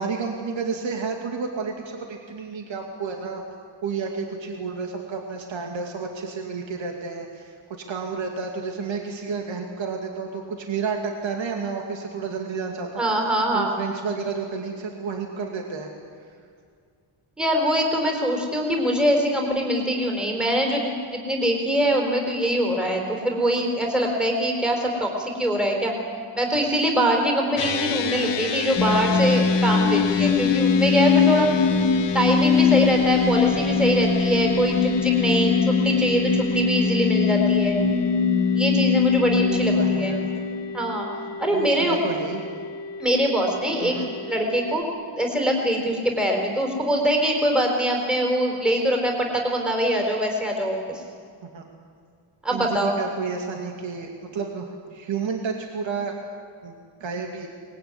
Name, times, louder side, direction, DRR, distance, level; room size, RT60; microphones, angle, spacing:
voice 1, 0.0-3.4 3.8-7.6 7.9-13.0 13.5-15.9 39.4-40.4 41.5-42.4 43.8-44.1 51.5-51.7 52.5-56.2 56.6-57.5, right 5 dB, 65° right, 2 dB, 2.6 m, -31 dB
voice 2, 13.0-13.7 17.4-25.9 26.3-31.5 32.1-37.8 38.5-40.2 40.7-41.1 41.4-42.0 43.0-44.8 45.2-51.0 52.4-53.0, equal, ahead, 0 dB, 4.2 m, -23 dB
sound 1, 27.6-44.8, left 5 dB, 55° left, 1.5 m, -32 dB
sound 2, 28.8-40.9, left 5 dB, 30° left, 1.3 m, -21 dB
24.0 x 21.0 x 9.8 m, 2.2 s
wide cardioid pair, 155°, 49 cm